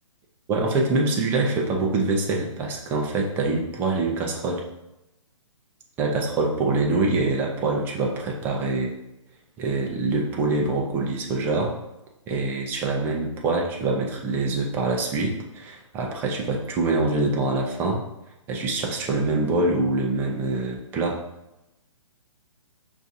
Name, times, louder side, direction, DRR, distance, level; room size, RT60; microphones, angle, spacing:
voice 1, 0.5-4.6 6.0-8.9 9.6-11.7 12.3-18.0 18.5-21.2, right 3 dB, 10° right, 0 dB, 0.4 m, -25 dB
5.7 x 2.5 x 2.7 m, 0.92 s
hypercardioid pair, 150°, 17 cm